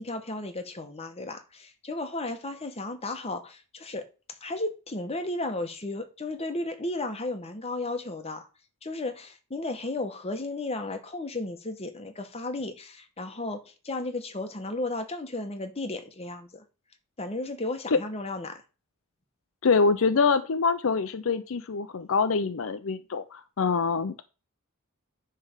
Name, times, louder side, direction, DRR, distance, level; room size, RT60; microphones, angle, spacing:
voice 1, 0.0-4.1 4.4-8.5 8.8-16.6 17.2-18.6, left 2 dB, 30° left, 1.1 m, -34 dB
voice 2, 19.6-24.2, left 4 dB, 65° left, 0.5 m, -25 dB
9.7 x 3.4 x 6.5 m
head